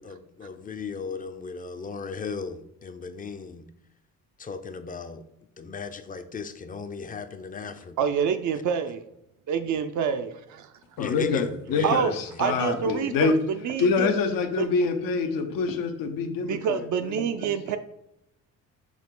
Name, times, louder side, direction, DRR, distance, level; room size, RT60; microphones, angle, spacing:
voice 1, 0.0-3.7 4.4-5.2 5.6-8.0 11.0-12.0 12.3-12.9, left 5 dB, 25° left, 0.4 m, -37 dB
voice 2, 8.0-9.0 9.5-10.7 11.8-12.1 12.4-14.1 14.6-14.7 16.4-17.8, right 7 dB, 60° right, 0.4 m, -27 dB
voice 3, 11.0-13.3 13.8-17.5, left 5 dB, 80° left, 0.7 m, -26 dB
6.0 x 2.4 x 3.7 m
cardioid pair, 80°, 33 cm